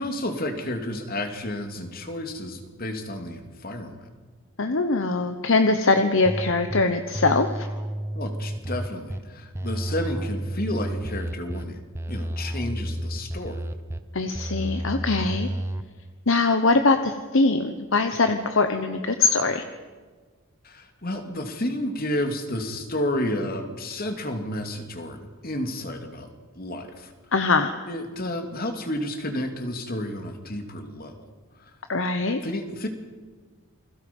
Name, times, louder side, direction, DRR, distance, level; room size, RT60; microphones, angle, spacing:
voice 1, 0.0-4.1 8.1-11.8 12.1-13.6 20.6-26.3 26.5-27.1 27.9-31.2 32.4-32.9, left 1 dB, 45° left, 5 dB, 2.7 m, -31 dB
voice 2, 4.6-7.7 14.1-15.5 16.3-19.6 27.3-27.7 31.9-32.4, left 3 dB, 60° left, 7 dB, 1.1 m, -22 dB
sound 1, 6.3-6.8 7.1-9.2 9.5-11.6 11.9-14.0 14.3-15.8, right 1 dB, 10° right, 1.0 m, -31 dB
28.5 x 21.5 x 5.5 m, 1.5 s
head